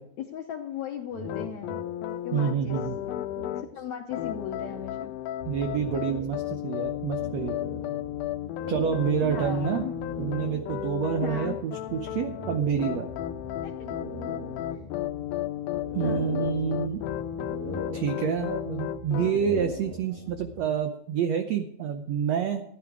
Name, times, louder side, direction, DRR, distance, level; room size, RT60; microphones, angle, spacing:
voice 1, 0.2-1.7 2.2-2.8 3.5-5.1 9.2-9.9 11.2-11.6 13.6-13.7 14.7-14.9 16.0-16.4, left 9 dB, 70° left, 4 dB, 1.7 m, -37 dB
sound 1, 1.1-3.9 4.2-5.3 5.7-11.1 12.1-13.4 13.8-15.1 15.5-17.0 17.3-18.6 19.1-20.4, left 1 dB, 35° right, 3.8 m, -41 dB
sound 2, 1.2-3.7 4.1-19.4, left 12 dB, 85° left, 2.5 m, -34 dB
voice 2, 2.3-3.0 5.5-7.6 8.7-9.8 10.2-13.1 15.9-17.0 17.9-22.6, right 7 dB, 85° right, 7 dB, 1.5 m, -28 dB
sound 3, 5.4-20.8, left 4 dB, 15° right, 3.2 m, -45 dB
15.0 x 10.5 x 4.8 m, 0.75 s
omnidirectional pair, 4.2 m